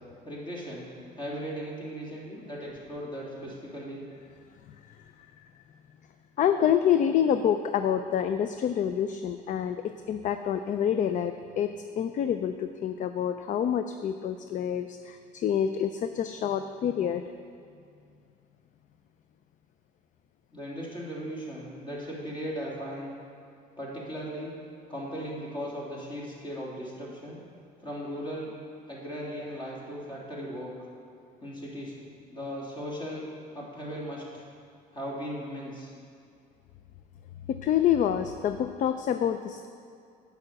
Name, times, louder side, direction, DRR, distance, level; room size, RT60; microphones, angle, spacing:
voice 1, 0.2-0.9 1.1-4.0 20.5-23.1 23.8-24.6 24.9-27.4 27.8-28.5 28.9-30.9 31.4-32.0 32.3-33.2 33.5-34.5 34.9-35.9, equal, 30° left, -4 dB, 2.9 m, -37 dB
voice 2, 6.4-17.2 37.5-39.7, left 9 dB, 50° left, 9 dB, 0.4 m, -27 dB
8.6 x 5.9 x 8.0 m, 2.3 s
cardioid pair, 110°, 17 cm